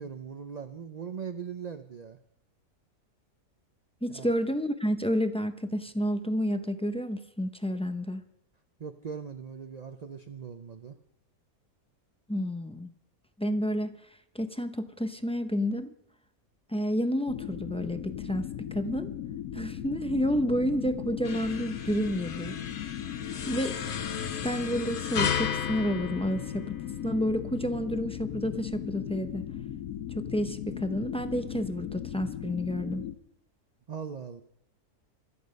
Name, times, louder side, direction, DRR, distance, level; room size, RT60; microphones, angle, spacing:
voice 1, 0.0-2.2 4.1-4.3 8.8-11.0 33.9-34.4, right 6 dB, 50° right, 8 dB, 0.5 m, -40 dB
voice 2, 4.0-8.2 12.3-12.9 13.4-14.0 14.3-15.9 16.7-19.1 19.5-22.6 23.3-23.9 24.4-26.7 27.0-29.4 30.1-33.0, equal, 10° left, 8 dB, 0.4 m, -30 dB
sound 1, 17.3-33.1, left 10 dB, 85° left, 1.3 m, -38 dB
sound 2, 21.2-27.0, left 7 dB, 50° left, 0.6 m, -35 dB
25.0 x 8.6 x 5.3 m, 0.74 s
omnidirectional pair, 1.5 m